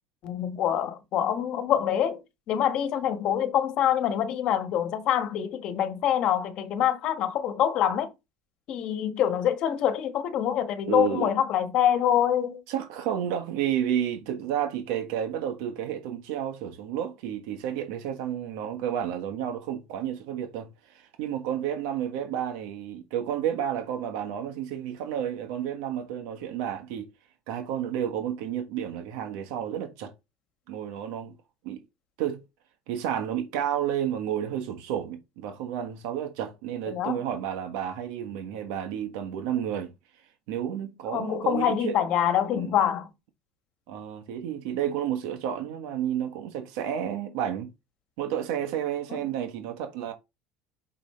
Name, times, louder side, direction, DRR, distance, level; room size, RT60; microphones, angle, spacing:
voice 1, 0.2-2.2 2.5-8.1 8.7-12.6 36.9-37.2 41.1-43.1, left 10 dB, 45° left, 1.4 m, -25 dB
voice 2, 10.9-11.3 12.7-27.1 27.5-30.1 30.7-31.3 31.6-31.8 32.2-32.4 32.9-39.9 40.5-42.0 42.5-42.7 43.9-47.7 48.2-50.1, right 10 dB, 75° right, 1.3 m, -31 dB
6.5 x 5.2 x 3.2 m
cardioid pair, 150°, 2 cm